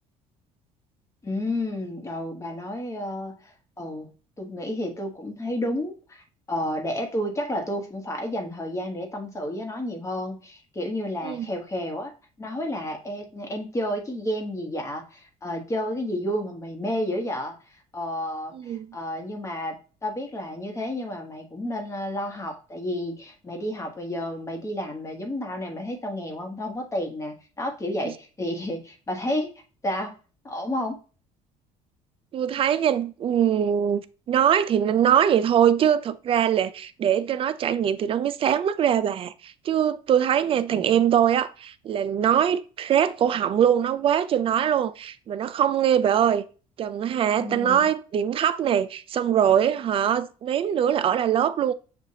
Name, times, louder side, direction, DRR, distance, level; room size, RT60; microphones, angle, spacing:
voice 1, 1.2-4.1 4.4-6.2 6.5-17.5 17.9-29.5 29.8-30.2 30.4-31.0 40.7-41.0 47.4-47.9, left 1 dB, 20° left, 1.1 m, -31 dB
voice 2, 18.5-19.0 28.1-28.2 32.3-46.4 46.8-51.7, right 9 dB, 40° right, 0.3 m, -22 dB
6.5 x 2.4 x 2.7 m
cardioid pair, 105°, 15 cm